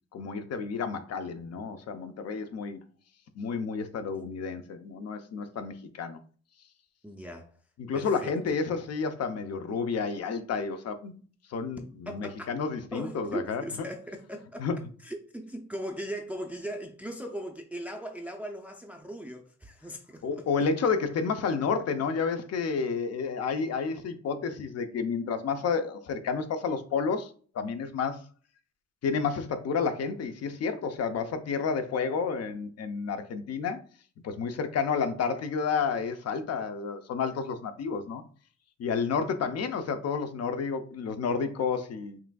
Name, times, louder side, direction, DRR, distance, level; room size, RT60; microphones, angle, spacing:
voice 1, 0.1-2.8 3.4-6.2 7.8-11.2 11.5-13.6 14.6-14.8 20.2-28.2 29.0-33.8 34.2-38.2 38.8-42.2, left 5 dB, 55° left, 0.6 m, -30 dB
voice 2, 7.0-7.6 7.9-8.3 12.1-12.5 12.9-14.7 15.0-20.5, equal, 5° right, 0.4 m, -39 dB
5.8 x 2.5 x 2.3 m
cardioid pair, 90°, 30 cm